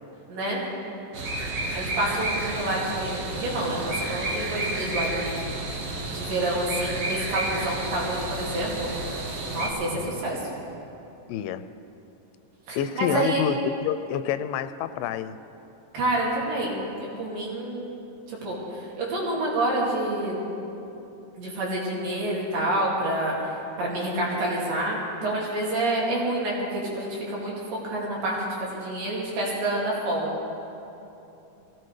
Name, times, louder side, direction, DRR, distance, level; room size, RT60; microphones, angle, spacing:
voice 1, 0.3-0.6 1.7-5.4 6.1-9.2 9.5-10.4 12.7-13.4 15.9-16.8 17.2-17.9 18.3-20.4 21.4-30.3, right 1 dB, 80° right, -5 dB, 4.1 m, -28 dB
sound 1, 1.1-9.7, right 2 dB, 55° right, 2.4 m, -31 dB
voice 2, 11.3-11.6 12.8-15.4, left 9 dB, 90° left, 12 dB, 2.3 m, -28 dB
22.0 x 16.5 x 3.3 m, 2.9 s
omnidirectional pair, 3.9 m